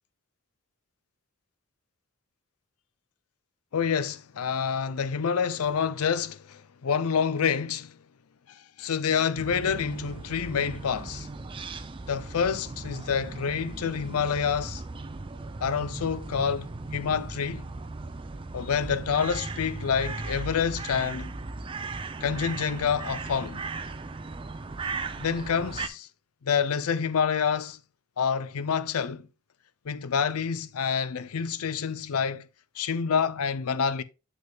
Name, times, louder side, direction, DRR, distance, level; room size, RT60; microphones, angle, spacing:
voice 1, 3.7-7.9 8.5-11.3 12.1-14.8 15.6-17.6 18.5-21.3 22.2-23.6 25.2-26.1 26.4-27.8 28.2-29.3 29.9-32.4 32.8-34.0, left 6 dB, 75° left, 0.5 m, -28 dB
sound 1, 9.4-25.9, right 3 dB, 25° right, 0.4 m, -37 dB
7.2 x 6.3 x 2.3 m
head